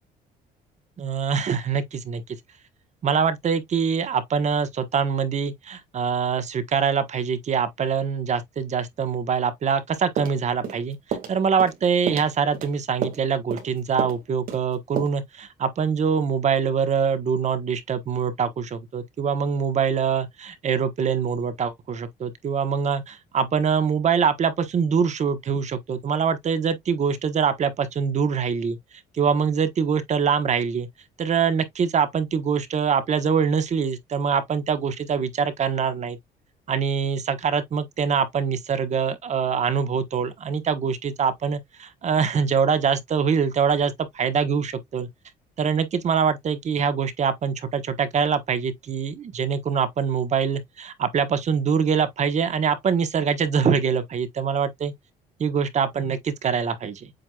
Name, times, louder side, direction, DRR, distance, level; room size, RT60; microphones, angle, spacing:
voice 1, 1.0-2.2 3.0-28.8 29.1-30.9 31.2-36.2 36.7-45.1 45.6-54.9 55.4-57.1, right 6 dB, 45° right, 1.1 m, -24 dB
sound 1, 10.2-10.8 11.1-11.3 11.6-11.8 12.1-12.7 13.0-13.2 13.5-13.7 14.0-14.2 14.5-14.6 15.0-15.1, right 7 dB, 60° right, 2.1 m, -30 dB
7.8 x 2.9 x 2.3 m
cardioid pair, 110°, 17 cm